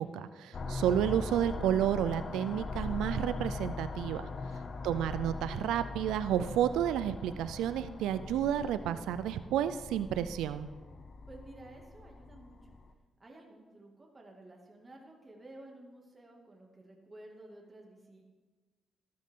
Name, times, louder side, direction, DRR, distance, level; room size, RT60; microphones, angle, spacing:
voice 1, 0.0-4.3 4.8-10.7, right 10 dB, 90° right, 12 dB, 0.4 m, -31 dB
sound 1, 0.5-12.9, left 3 dB, 50° left, 0.9 m, -41 dB
voice 2, 11.3-12.8 13.2-18.3, right 1 dB, 30° right, 0 dB, 2.2 m, -53 dB
13.0 x 12.5 x 3.7 m, 1.3 s
supercardioid pair, 65°, 0 cm